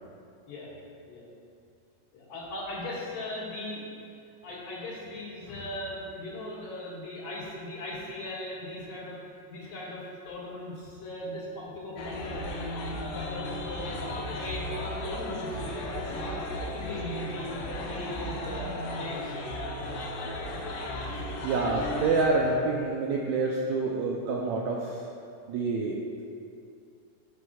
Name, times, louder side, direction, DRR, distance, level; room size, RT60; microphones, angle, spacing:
voice 1, 2.1-3.9 4.2-9.2 9.5-12.7 13.1-14.0 14.3-19.4, left 1 dB, 60° left, -6 dB, 2.8 m, -38 dB
sound 1, 12.0-22.3, left 1 dB, 85° left, 2.5 m, -35 dB
voice 2, 21.4-25.1 25.5-26.2, right 3 dB, 80° right, -2 dB, 1.6 m, -27 dB
13.0 x 7.7 x 2.3 m, 2.5 s
omnidirectional pair, 3.8 m